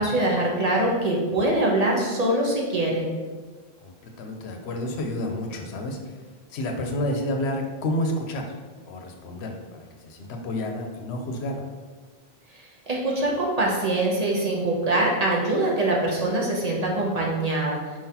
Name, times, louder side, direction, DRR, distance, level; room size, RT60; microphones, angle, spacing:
voice 1, 0.0-3.0 12.9-17.8, right 1 dB, 40° right, -3 dB, 0.8 m, -23 dB
voice 2, 3.8-6.1 6.5-8.5 8.9-11.6, left 1 dB, 85° left, 3 dB, 0.9 m, -30 dB
4.9 x 3.8 x 2.8 m, 1.4 s
omnidirectional pair, 1.1 m